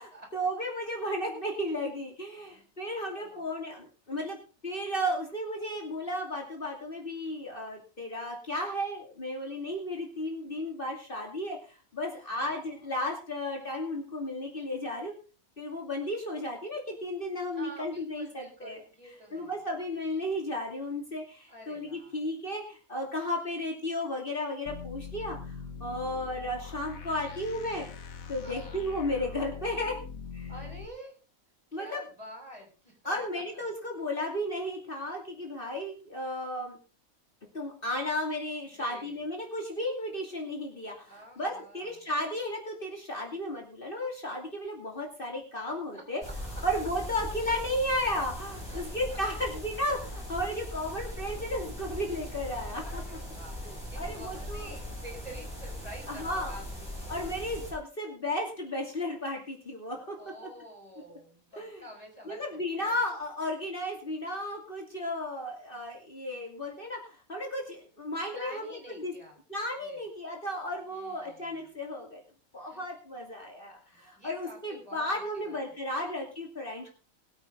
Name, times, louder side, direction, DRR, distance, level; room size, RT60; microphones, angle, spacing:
voice 1, 0.3-4.4 4.6-15.1 15.6-18.8 19.3-27.9 28.3-30.0 30.3-30.5 31.7-32.0 33.0-36.8 37.5-46.2 46.6-53.0 53.6-54.7 56.1-56.5 57.1-60.2 60.4-60.5 61.5-61.8 62.3-69.1 69.5-72.2 72.5-76.9, left 1 dB, 40° left, 0 dB, 2.8 m, -34 dB
voice 2, 2.4-2.7 3.2-3.4 12.3-12.9 17.5-19.6 21.5-22.2 28.4-28.9 30.5-31.2 31.7-33.6 38.7-39.2 41.1-41.9 45.9-46.6 48.6-49.2 52.8-57.2 60.2-63.0 68.3-69.4 69.8-70.0 70.7-71.6 72.6-72.9 73.9-75.6 75.9-76.1, equal, 25° right, 1 dB, 5.9 m, -49 dB
sound 1, 24.7-30.9, left 6 dB, 75° left, 1.5 m, -42 dB
sound 2, 46.2-57.7, equal, 15° left, 8.1 m, -40 dB
22.0 x 8.9 x 3.8 m, 0.36 s
omnidirectional pair, 1.5 m